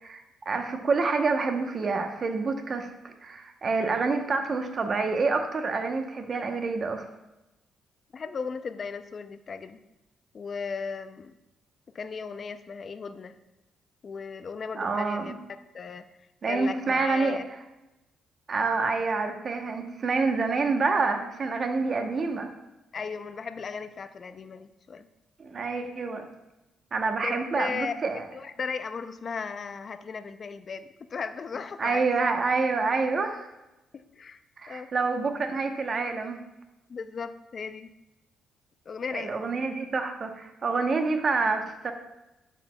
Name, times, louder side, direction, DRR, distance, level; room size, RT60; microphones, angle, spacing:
voice 1, 0.0-7.0 14.7-15.3 16.4-17.4 18.5-22.5 25.4-26.3 26.9-28.2 31.8-33.5 34.6-36.4 39.1-41.9, right 4 dB, 45° right, 5 dB, 0.9 m, -27 dB
voice 2, 8.1-9.8 10.3-11.3 11.9-13.3 14.0-15.3 15.7-16.1 16.5-17.4 22.9-25.1 27.2-27.9 28.3-32.3 33.9-34.4 34.7-34.9 36.9-37.9 38.9-39.4, left 5 dB, 45° left, 11 dB, 0.5 m, -36 dB
10.5 x 6.1 x 2.3 m, 0.97 s
cardioid pair, 90°, 0 cm